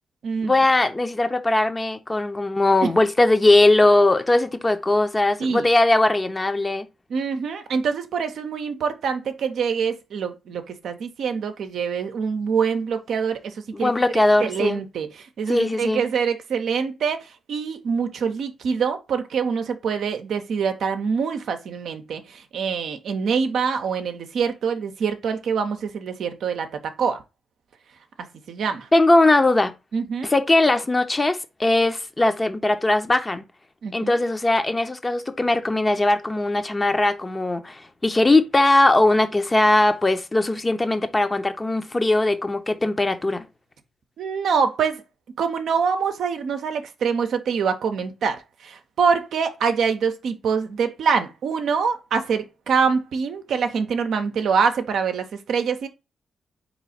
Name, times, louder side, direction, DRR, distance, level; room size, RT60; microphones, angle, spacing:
voice 1, 0.4-6.9 13.7-14.8 15.5-16.0 28.9-29.7 30.2-33.4 33.9-43.5, left 2 dB, 30° left, 0.7 m, -20 dB
voice 2, 7.1-13.5 13.8-13.9 14.4-26.7 27.0-27.2 28.5-28.9 29.9-30.3 33.8-34.1 44.2-45.0 45.4-55.9, right 6 dB, 70° right, 0.6 m, -25 dB
4.1 x 3.1 x 3.9 m
hypercardioid pair, 40°, 0 cm